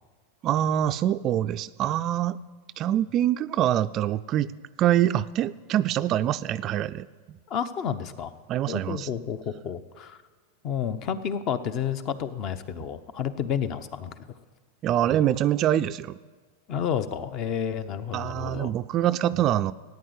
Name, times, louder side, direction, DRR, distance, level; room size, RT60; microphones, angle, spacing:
voice 1, 0.4-2.4 2.8-4.5 4.8-7.4 8.5-9.1 14.8-16.2 18.1-19.7, right 11 dB, 35° right, 11 dB, 0.3 m, -25 dB
voice 2, 7.5-8.3 8.7-10.2 10.6-14.3 16.7-18.7, left 8 dB, 40° left, 13 dB, 0.9 m, -30 dB
14.5 x 9.5 x 8.2 m, 1.4 s
supercardioid pair, 130°, 0 cm